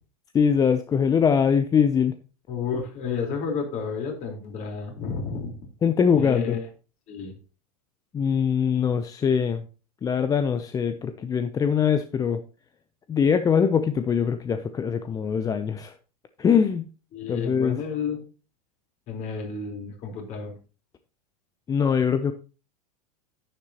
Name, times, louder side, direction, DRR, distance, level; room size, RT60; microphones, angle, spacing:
voice 1, 0.3-2.2 5.8-6.6 8.1-9.7 10.0-12.4 13.1-15.9 16.4-16.8 17.3-17.8 21.7-22.3, left 7 dB, 20° left, 11 dB, 0.6 m, -22 dB
voice 2, 2.5-5.6 6.2-6.7 7.1-7.3 17.1-18.2 19.1-20.5, left 5 dB, 40° left, 2 dB, 3.9 m, -31 dB
10.0 x 9.9 x 2.9 m, 0.34 s
figure-of-eight pair, 90°, 20 cm